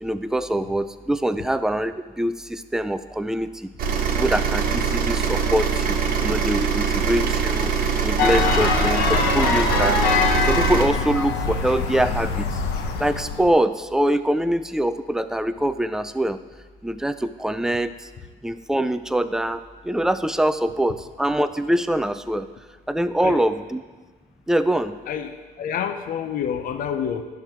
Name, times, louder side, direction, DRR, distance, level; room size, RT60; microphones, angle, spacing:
voice 1, 0.0-3.5 4.1-6.0 6.2-7.7 8.0-10.0 10.5-12.5 13.0-16.4 16.8-17.9 18.4-19.6 19.8-22.5 22.9-23.8 24.5-24.9, right 1 dB, 5° right, 11 dB, 0.3 m, -24 dB
sound 1, 3.8-10.9, right 6 dB, 60° right, 1.2 m, -23 dB
sound 2, 8.2-13.5, left 5 dB, 90° left, 0.8 m, -23 dB
voice 2, 25.1-27.2, left 8 dB, 55° left, 8 dB, 0.7 m, -28 dB
11.0 x 5.8 x 4.6 m, 1.3 s
cardioid pair, 110°, 17 cm